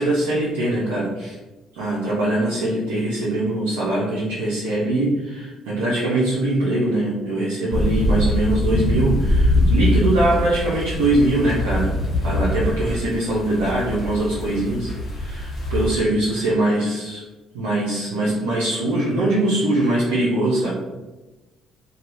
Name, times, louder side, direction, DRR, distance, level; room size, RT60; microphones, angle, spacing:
voice 1, 0.0-1.4 1.8-11.9 12.2-14.9 15.2-17.2 17.5-20.7, right 1 dB, 85° right, -7 dB, 0.6 m, -22 dB
sound 1, 7.7-15.9, left 1 dB, 45° left, 0.8 m, -23 dB
2.7 x 2.3 x 2.5 m, 1.1 s
hypercardioid pair, 55°, 0 cm